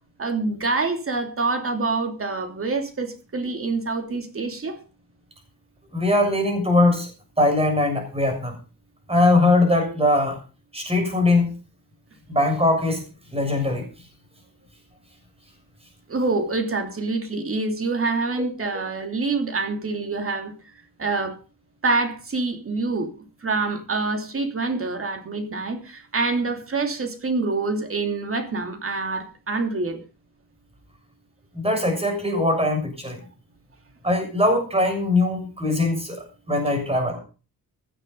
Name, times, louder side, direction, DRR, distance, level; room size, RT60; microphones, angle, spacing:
voice 1, 0.2-4.8 16.1-20.5 21.0-21.4 21.8-30.0, right 3 dB, 40° right, 2.7 m, -26 dB
voice 2, 5.9-7.1 7.4-8.5 9.1-10.4 10.7-11.5 12.3-13.0 13.3-13.8 31.6-33.2 34.0-37.2, left 2 dB, 15° right, 6.9 m, -21 dB
17.0 x 9.8 x 5.4 m
wide cardioid pair, 140°, 35 cm